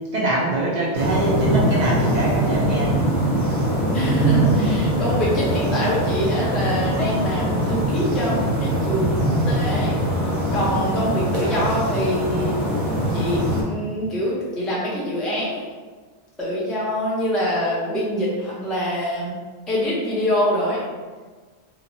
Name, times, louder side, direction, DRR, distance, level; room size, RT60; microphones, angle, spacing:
voice 1, 0.1-3.0 11.4-11.7, right 2 dB, 55° right, -5 dB, 0.5 m, -24 dB
sound 1, 0.9-13.6, right 1 dB, 75° right, 1.0 m, -22 dB
voice 2, 3.9-10.0 10.5-12.6 13.1-15.7 16.4-19.4 19.7-20.8, equal, ahead, -7 dB, 0.3 m, -25 dB
2.8 x 2.1 x 2.5 m, 1.4 s
omnidirectional pair, 1.1 m